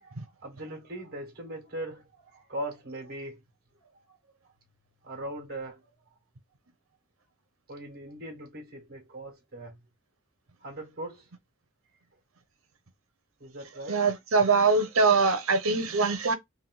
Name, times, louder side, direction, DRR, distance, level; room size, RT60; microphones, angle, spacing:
voice 1, 0.0-3.4 3.8-4.2 5.0-5.9 7.7-9.8 10.6-11.3 13.4-14.0, right 1 dB, 45° right, 1.6 m, -40 dB
voice 2, 13.9-16.4, right 4 dB, 85° right, 0.9 m, -23 dB
3.7 x 2.7 x 3.9 m
head